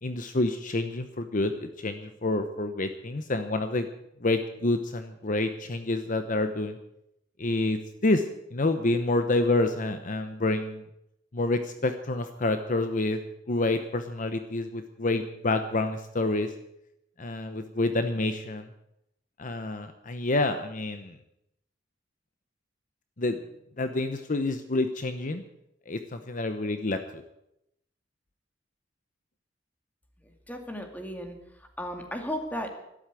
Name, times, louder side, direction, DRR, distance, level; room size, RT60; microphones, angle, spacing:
voice 1, 0.0-3.9 4.2-6.8 7.4-8.2 8.5-10.8 11.3-13.2 13.5-16.5 17.2-18.7 19.4-21.2 23.2-23.4 23.8-25.4 25.9-27.2, left 2 dB, 45° left, 8 dB, 0.9 m, -28 dB
voice 2, 30.2-31.4 31.8-32.7, equal, 10° left, 4 dB, 2.3 m, -35 dB
12.5 x 12.5 x 8.3 m, 0.83 s
head